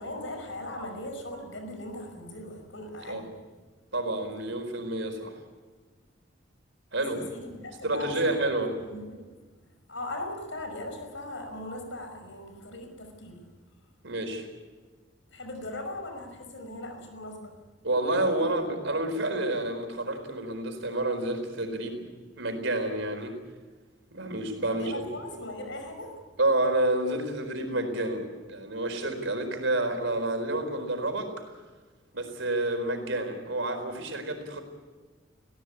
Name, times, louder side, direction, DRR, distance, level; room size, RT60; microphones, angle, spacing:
voice 1, 0.0-3.3 7.0-8.4 8.8-9.3 9.9-13.5 15.3-17.6 18.3-18.5 24.7-26.2, left 1 dB, 85° left, 6 dB, 5.6 m, -39 dB
voice 2, 3.9-5.3 6.9-7.2 7.8-8.7 14.0-14.4 17.8-22.0 22.4-23.4 24.1-25.0 26.4-31.3 32.1-34.6, right 1 dB, 85° right, 6 dB, 4.4 m, -29 dB
20.0 x 17.5 x 9.8 m, 1.3 s
head